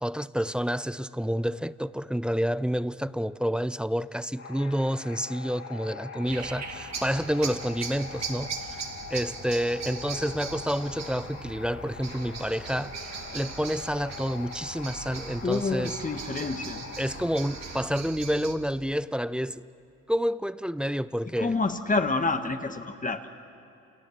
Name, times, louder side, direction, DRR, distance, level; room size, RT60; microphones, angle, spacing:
voice 1, 0.0-8.7 9.1-13.0 13.3-16.0 17.0-19.6 20.1-21.6, equal, 5° right, 0.5 m, -29 dB
sound 1, 4.4-17.8, left 6 dB, 60° left, 5.9 m, -43 dB
sound 2, 6.3-18.6, right 6 dB, 60° right, 2.5 m, -40 dB
voice 2, 15.4-16.8 21.4-23.3, left 3 dB, 25° left, 1.6 m, -28 dB
29.0 x 28.0 x 6.6 m
cardioid pair, 90°, 30 cm